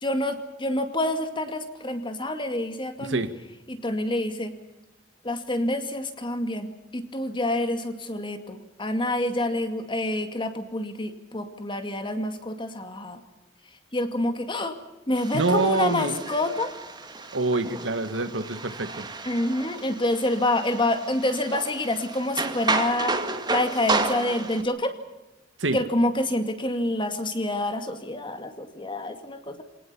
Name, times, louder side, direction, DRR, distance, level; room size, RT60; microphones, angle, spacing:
voice 1, 0.0-3.2 3.7-4.5 5.2-13.2 13.9-14.8 15.1-16.7 19.3-23.2 23.5-24.9 25.7-29.6, left 1 dB, 25° left, 8 dB, 2.3 m, -27 dB
voice 2, 3.0-3.3 15.3-16.2 17.3-19.1 25.6-25.8, right 3 dB, 85° right, 11 dB, 1.7 m, -25 dB
sound 1, 15.1-24.6, right 3 dB, 25° right, 2.3 m, -32 dB
27.5 x 18.5 x 7.0 m, 1.0 s
head